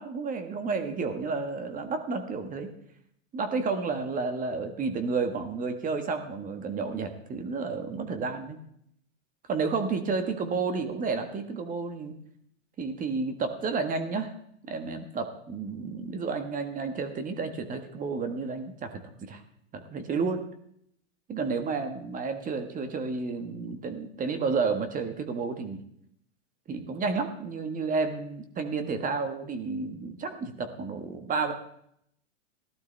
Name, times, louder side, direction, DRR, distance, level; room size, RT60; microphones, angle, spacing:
voice 1, 0.0-2.7 3.3-8.6 9.5-12.1 12.8-14.3 14.7-19.4 19.7-20.4 21.3-25.8 26.7-31.5, right 4 dB, 20° right, 8 dB, 1.4 m, -31 dB
17.0 x 12.0 x 3.4 m, 0.70 s
hypercardioid pair, 125°, 39 cm